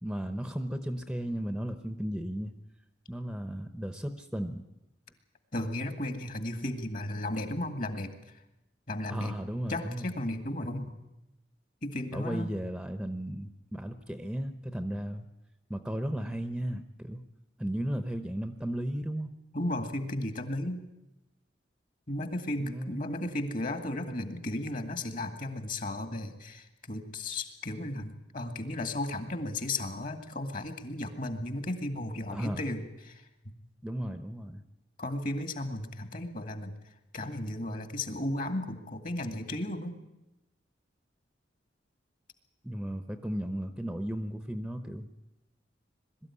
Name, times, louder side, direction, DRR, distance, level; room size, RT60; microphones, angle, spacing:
voice 1, 0.0-2.5 3.1-4.6 9.1-10.1 12.1-15.3 15.7-17.2 17.6-19.3 22.6-23.1 32.3-32.6 33.8-34.6 42.6-45.1, right 1 dB, 5° right, 8 dB, 0.8 m, -35 dB
voice 2, 5.5-8.1 8.9-9.4 9.7-10.9 11.8-12.5 19.5-20.9 22.1-33.5 35.0-36.7 37.1-39.9, left 1 dB, 45° left, 7 dB, 2.1 m, -34 dB
22.0 x 13.0 x 9.8 m, 0.93 s
head